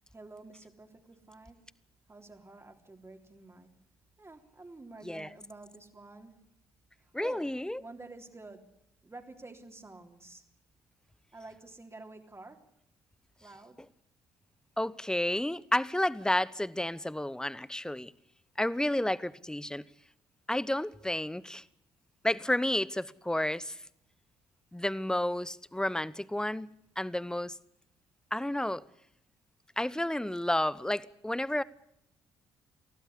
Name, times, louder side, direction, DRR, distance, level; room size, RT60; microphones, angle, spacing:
voice 1, 0.1-1.6 2.1-3.7 4.2-6.4 6.9-7.5 7.8-8.7 9.0-10.4 11.3-12.6 13.4-13.8, right 2 dB, 20° right, 3.6 m, -49 dB
voice 2, 7.1-7.8 14.8-18.1 18.6-19.8 20.5-21.6 22.2-23.8 24.7-26.7 27.0-27.6 28.3-28.8 29.8-31.6, left 1 dB, 5° left, 1.0 m, -31 dB
25.0 x 16.5 x 8.4 m
figure-of-eight pair, 45°, 12 cm